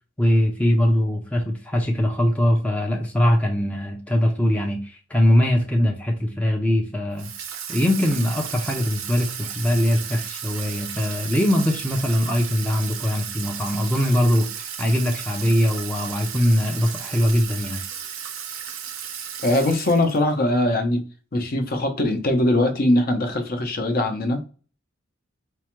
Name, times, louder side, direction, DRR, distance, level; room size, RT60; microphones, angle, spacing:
voice 1, 0.2-7.3 7.7-17.8, left 1 dB, 5° left, 0 dB, 0.5 m, -21 dB
Water tap faucet / Sink (filling or washing), 7.2-20.3, right 8 dB, 85° right, 0.6 m, -34 dB
voice 2, 19.4-21.1 21.3-24.4, left 1 dB, 45° left, 5 dB, 0.7 m, -21 dB
4.6 x 2.1 x 3.0 m, 0.37 s
head